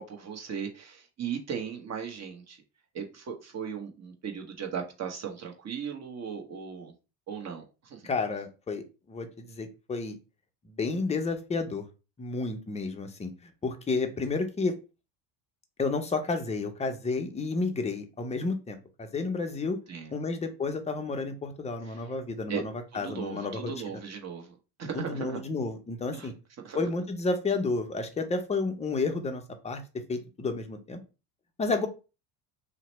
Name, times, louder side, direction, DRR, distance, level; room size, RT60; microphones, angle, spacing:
voice 1, 0.0-2.6 2.9-6.9 7.3-8.0 19.9-20.1 21.8-22.1 22.5-22.6 22.9-24.5 24.8-25.4 26.1-26.3 26.6-26.8, right 7 dB, 30° right, 0.9 m, -37 dB
voice 2, 8.0-8.8 9.1-10.2 10.6-11.9 12.2-13.3 13.6-14.7 15.8-19.8 20.1-23.7 24.9-26.3 26.7-29.8 30.1-31.0 31.6-31.9, left 3 dB, 15° left, 0.5 m, -31 dB
2.8 x 2.1 x 4.0 m
supercardioid pair, 95°, 49 cm